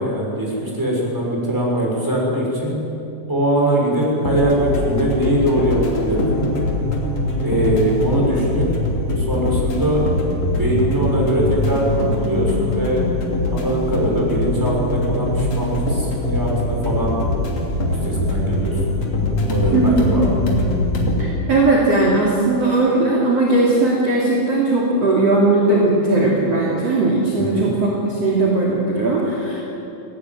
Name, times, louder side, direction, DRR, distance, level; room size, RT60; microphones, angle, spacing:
voice 1, 0.0-2.7 3.3-6.5 7.4-8.7 9.2-10.1 10.5-13.0 13.5-17.2 18.0-18.8 19.4-20.2 27.4-27.6, right 1 dB, 5° right, -3 dB, 5.5 m, -21 dB
sound 1, 4.0-21.2, left 1 dB, 40° left, 3.4 m, -22 dB
voice 2, 19.7-20.1 21.2-29.6, right 2 dB, 35° right, -4 dB, 3.4 m, -18 dB
23.0 x 17.5 x 9.3 m, 2.9 s
omnidirectional pair, 5.6 m